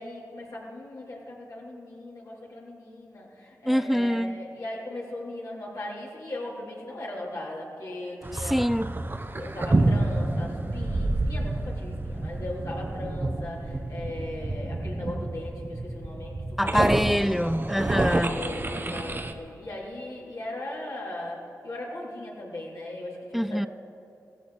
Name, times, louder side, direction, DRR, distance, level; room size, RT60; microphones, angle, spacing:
voice 1, 0.0-8.6 9.4-16.9 17.9-23.7, left 1 dB, 65° left, 3.7 m, -38 dB
voice 2, 3.7-4.4 8.4-8.9 16.6-18.4 23.3-23.7, equal, ahead, 0.3 m, -25 dB
sound 1, 8.2-19.3, right 2 dB, 35° right, 0.9 m, -29 dB
16.5 x 15.0 x 4.2 m
cardioid pair, 55°, 6 cm